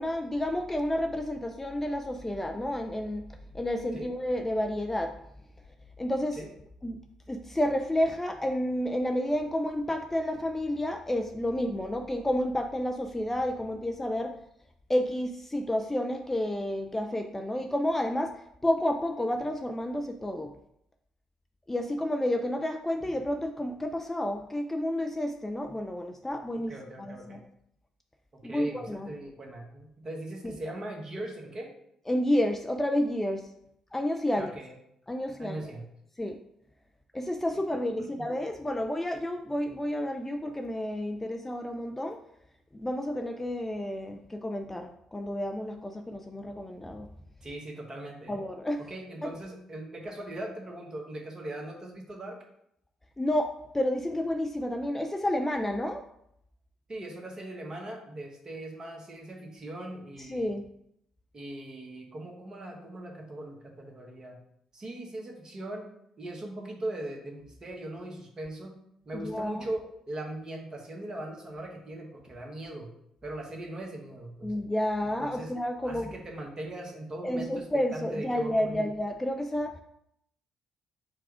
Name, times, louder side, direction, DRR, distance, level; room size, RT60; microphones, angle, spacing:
voice 1, 0.0-3.2 3.5-5.1 6.0-6.4 6.8-7.0 7.3-14.3 14.9-18.3 18.6-20.5 21.7-26.7 27.0-27.4 28.4-29.1 30.4-30.5 32.1-33.5 33.9-34.5 35.1-35.6 36.2-36.4 37.1-42.2 42.7-47.1 48.3-48.8 49.2-49.3 53.2-56.0 60.3-60.6 69.1-69.6 74.4-76.1 77.2-79.8, left 1 dB, 15° left, 5 dB, 0.4 m, -30 dB
voice 2, 26.7-27.4 28.4-31.7 34.3-34.7 35.4-35.8 37.5-37.6 38.0-38.3 47.4-48.5 48.9-52.4 56.9-60.5 61.3-64.4 64.7-65.9 66.2-68.7 69.0-72.9 73.2-74.5 75.0-75.5 75.8-78.9, right 1 dB, 35° right, 0 dB, 1.2 m, -40 dB
4.6 x 2.3 x 4.8 m, 0.75 s
figure-of-eight pair, 45°, 2 cm